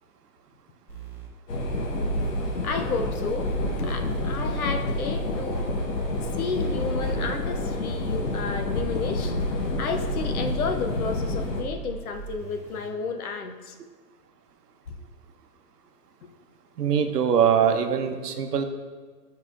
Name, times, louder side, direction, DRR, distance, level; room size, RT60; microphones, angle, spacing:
sound 1, 0.9-1.3 2.1-3.1 3.4-4.3 5.1-7.3 7.9-8.9 9.4-10.3 10.9-12.9, right 4 dB, 5° left, 1.0 m, -41 dB
sound 2, 1.5-11.6, left 1 dB, 80° left, 1.2 m, -28 dB
voice 1, 2.6-3.5 3.7-5.7 6.4-13.8 14.9-15.0 16.2-16.3, left 4 dB, 60° left, 6 dB, 0.8 m, -32 dB
voice 2, 16.8-18.6, right 8 dB, 75° right, 7 dB, 0.8 m, -22 dB
9.0 x 5.6 x 2.4 m, 1.5 s
hypercardioid pair, 145°, 48 cm